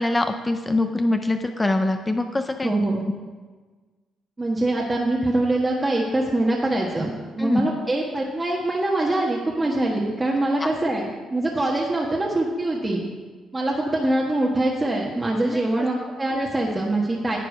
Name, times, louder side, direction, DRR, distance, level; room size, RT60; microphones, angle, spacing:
voice 1, 0.0-2.7 7.4-7.7 10.6-10.7 15.5-15.9, left 2 dB, 15° left, 7 dB, 0.6 m, -24 dB
voice 2, 2.6-3.0 4.4-13.0 13.5-17.4, right 1 dB, 20° right, -2 dB, 1.3 m, -24 dB
10.5 x 7.5 x 5.0 m, 1.4 s
cardioid pair, 90°, 0 cm